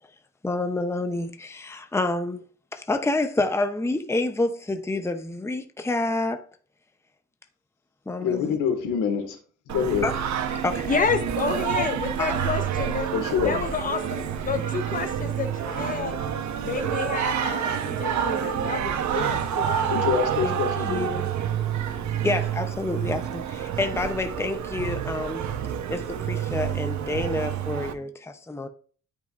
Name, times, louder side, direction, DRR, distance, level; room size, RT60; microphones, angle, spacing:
voice 1, 0.4-2.4 2.7-6.5 8.1-8.5 10.0-10.1 10.6-10.9 12.2-12.4 20.4-20.6 20.9-21.3 22.2-25.5 25.9-28.7, left 2 dB, 10° left, 0.8 m, -28 dB
voice 2, 8.2-9.4 9.7-10.1 11.8-11.9 13.1-13.6 19.9-21.1, left 7 dB, 90° left, 2.1 m, -25 dB
Singing, 9.7-27.9, right 9 dB, 65° right, 1.1 m, -28 dB
voice 3, 10.9-13.1 13.4-16.2 16.6-20.1, left 5 dB, 25° left, 1.1 m, -30 dB
12.5 x 5.5 x 2.6 m
cardioid pair, 90°, 30 cm